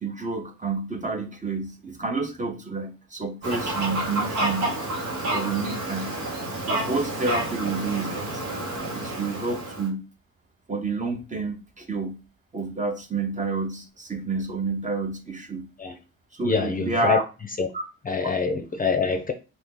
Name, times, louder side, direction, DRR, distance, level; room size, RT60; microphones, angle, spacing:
voice 1, 0.0-4.8 5.3-6.1 6.7-8.4 8.9-10.0 10.7-12.2 12.5-15.7 16.3-17.2 17.7-17.8, right 3 dB, 25° right, 0.7 m, -29 dB
Fowl, 3.4-9.9, right 2 dB, 80° right, 1.2 m, -29 dB
voice 2, 16.4-17.2 17.6-17.7 18.1-19.3, left 5 dB, 30° left, 0.5 m, -25 dB
2.8 x 2.7 x 3.7 m
cardioid pair, 90°, 30 cm